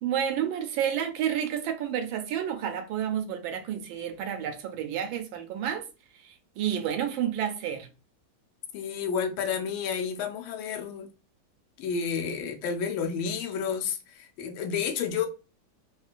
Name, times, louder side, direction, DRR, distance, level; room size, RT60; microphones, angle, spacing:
voice 1, 0.0-5.9 6.1-7.9, right 9 dB, 80° right, 1.4 m, -30 dB
voice 2, 8.7-11.1 11.8-15.3, left 6 dB, 85° left, 1.4 m, -30 dB
3.6 x 2.2 x 2.4 m
omnidirectional pair, 2.1 m